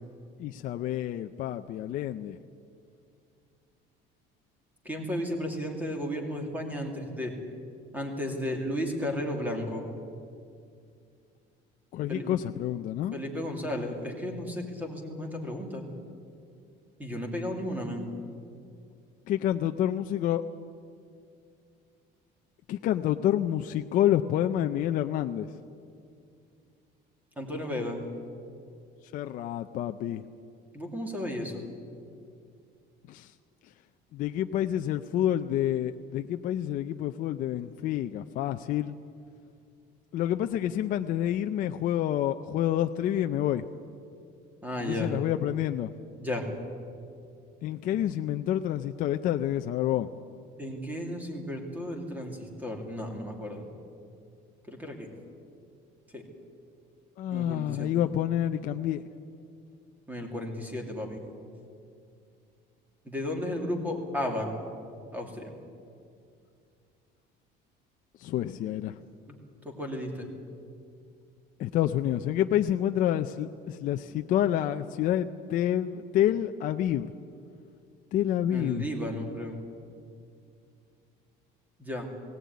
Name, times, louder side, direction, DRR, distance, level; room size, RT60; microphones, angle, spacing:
voice 1, 0.4-2.4 11.9-13.2 19.3-20.4 22.7-25.5 29.1-30.2 33.1-33.3 34.1-38.9 40.1-43.7 44.8-45.9 47.6-50.1 57.2-59.0 68.2-69.0 71.6-77.1 78.1-78.9, left 11 dB, 45° left, 7 dB, 0.5 m, -28 dB
voice 2, 4.8-7.4 7.9-9.8 12.1-12.2 13.1-15.8 17.0-18.1 27.4-28.0 30.7-31.6 44.6-45.1 46.2-46.5 50.6-53.7 54.7-55.1 56.1-56.2 57.3-58.0 60.1-61.2 63.0-64.5 65.1-65.5 69.3-69.4 69.6-70.3 78.5-79.6 81.8-82.1, left 1 dB, 10° right, 2 dB, 2.5 m, -34 dB
19.0 x 17.5 x 9.4 m, 2.4 s
cardioid pair, 180°, 19 cm